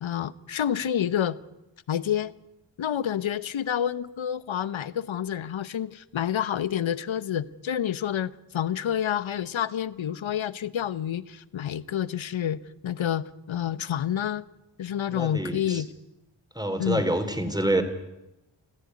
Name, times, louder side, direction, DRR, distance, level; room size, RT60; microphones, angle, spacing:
voice 1, 0.0-1.4 1.9-2.3 2.8-14.4 14.8-15.9 16.8-17.0, left 9 dB, 75° left, 0.9 m, -28 dB
voice 2, 15.1-15.8 16.6-17.8, right 1 dB, 10° right, 3.6 m, -27 dB
20.5 x 14.5 x 9.5 m
cardioid pair, 45°, 47 cm